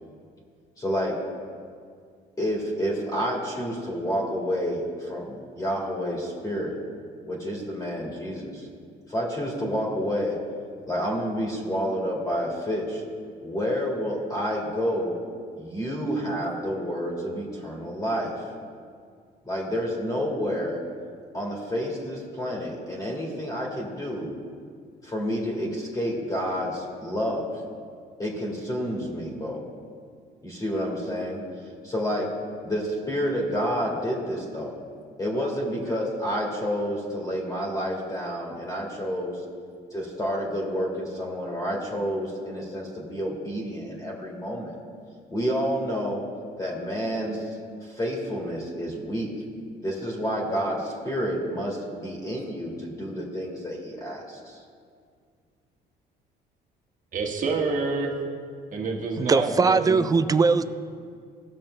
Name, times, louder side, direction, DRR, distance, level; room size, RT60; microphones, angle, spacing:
voice 1, 0.8-1.2 2.4-6.7 7.3-8.7 9.1-10.4 10.9-13.0 13.4-15.2 15.6-18.5 19.4-20.8 21.3-24.3 25.0-27.6 28.2-29.6 30.4-31.4 31.8-32.3 32.6-34.7 35.2-39.4 39.9-44.7 45.3-46.2 46.6-49.3 49.8-54.6, equal, 20° left, -3 dB, 2.0 m, -29 dB
voice 2, 57.1-58.1 58.7-60.0, right 4 dB, 50° right, 0 dB, 1.5 m, -27 dB
voice 3, 59.2-60.6, right 4 dB, 20° right, 12 dB, 0.3 m, -20 dB
17.0 x 6.3 x 3.3 m, 2.1 s
cardioid pair, 110°, 17 cm